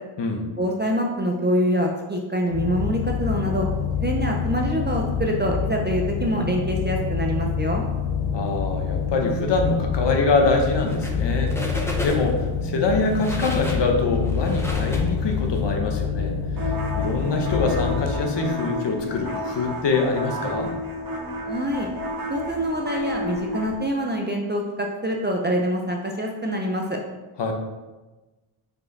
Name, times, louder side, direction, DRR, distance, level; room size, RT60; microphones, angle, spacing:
voice 1, 0.6-3.7 4.0-7.8 21.5-21.9 22.3-27.0, equal, 25° right, 0 dB, 0.4 m, -25 dB
sound 1, 2.5-18.1, left 6 dB, 80° left, 0.7 m, -26 dB
voice 2, 8.3-11.5 12.0-16.4 17.0-20.7 27.4-27.5, left 3 dB, 55° left, 2 dB, 1.0 m, -24 dB
sound 2, 10.8-11.2 11.5-12.4 12.9-15.6, equal, 5° left, 0.7 m, -32 dB
sound 3, 16.6-23.8, left 1 dB, 45° right, 1.0 m, -31 dB
5.3 x 4.7 x 4.0 m, 1.2 s
wide cardioid pair, 180°, 49 cm